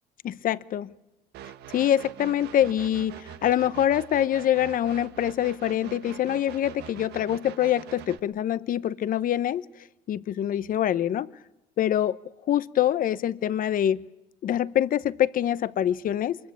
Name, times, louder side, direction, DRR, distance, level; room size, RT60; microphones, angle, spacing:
voice 1, 0.2-0.9 1.7-9.7 10.1-11.3 11.8-12.2 12.5-14.0 14.4-16.4, left 11 dB, 55° left, 16 dB, 0.9 m, -25 dB
sound 1, 1.3-8.2, right 11 dB, 75° right, 1.4 m, -43 dB
24.5 x 21.0 x 8.5 m, 0.91 s
cardioid pair, 110°, 17 cm